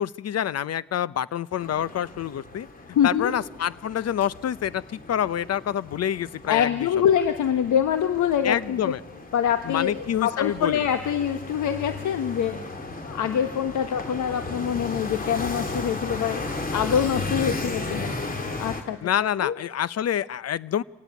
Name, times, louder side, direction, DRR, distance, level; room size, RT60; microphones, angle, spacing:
voice 1, 0.0-2.7 3.0-6.7 8.4-9.0 9.6-10.8 14.3-14.4 19.0-20.8, left 10 dB, 55° left, 18 dB, 0.8 m, -27 dB
sound 1, 1.6-18.8, left 3 dB, 30° left, 2.9 m, -35 dB
voice 2, 2.9-3.3 6.5-8.9 9.3-12.6 13.1-16.5 16.7-18.1 18.6-19.0 19.4-19.6, left 9 dB, 75° left, 8 dB, 1.5 m, -24 dB
25.5 x 17.5 x 9.7 m, 1.1 s
cardioid pair, 90°, 30 cm